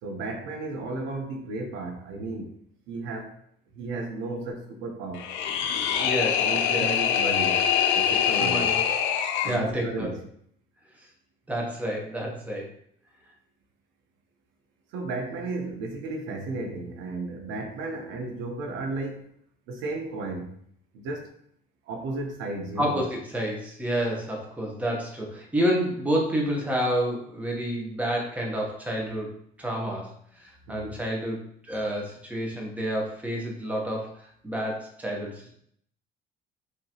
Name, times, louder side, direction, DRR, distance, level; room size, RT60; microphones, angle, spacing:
voice 1, 0.0-2.6 2.9-3.4 3.7-5.3 6.4-7.6 7.9-8.8 9.4-10.2 14.9-19.3 19.7-20.5 20.9-21.3 21.9-23.0 30.7-30.9, right 2 dB, 80° right, 3 dB, 1.0 m, -34 dB
sound 1, 5.1-9.6, left 8 dB, 80° left, 0.5 m, -24 dB
voice 2, 6.0-6.5 6.7-6.9 8.4-8.8 9.4-10.1 11.5-12.7 22.8-30.1 30.4-35.5, equal, 10° right, -1 dB, 1.0 m, -29 dB
6.0 x 2.9 x 3.0 m, 0.65 s
cardioid pair, 155°, 19 cm